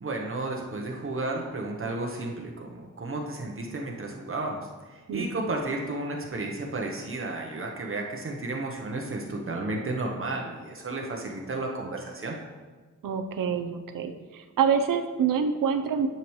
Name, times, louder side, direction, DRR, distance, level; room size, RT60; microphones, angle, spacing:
voice 1, 0.0-12.4, right 2 dB, 40° right, 0 dB, 0.9 m, -33 dB
voice 2, 13.0-16.1, right 7 dB, 85° right, 6 dB, 0.7 m, -26 dB
10.0 x 7.0 x 3.1 m, 1.3 s
wide cardioid pair, 145°, 32 cm